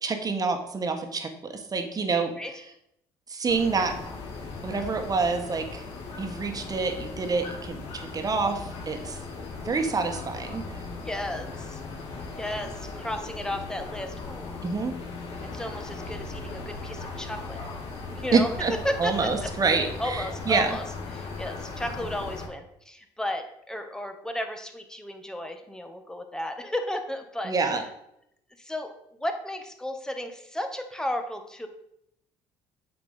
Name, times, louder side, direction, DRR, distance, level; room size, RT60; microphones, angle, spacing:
voice 1, 0.0-2.3 3.3-4.0 4.6-5.8 6.2-9.2 9.6-10.6 14.6-14.9 18.3-18.7 19.0-20.7 27.4-27.8, right 4 dB, 35° right, 6 dB, 1.8 m, -27 dB
sound 1, 3.5-22.5, left 3 dB, 70° left, 2.3 m, -38 dB
voice 2, 11.0-11.8 12.3-14.7 15.5-17.6 18.1-19.5 20.0-20.8 21.1-27.5 28.6-31.7, left 1 dB, 5° left, 6 dB, 1.6 m, -34 dB
8.6 x 6.0 x 5.8 m, 0.77 s
supercardioid pair, 80°, 11 cm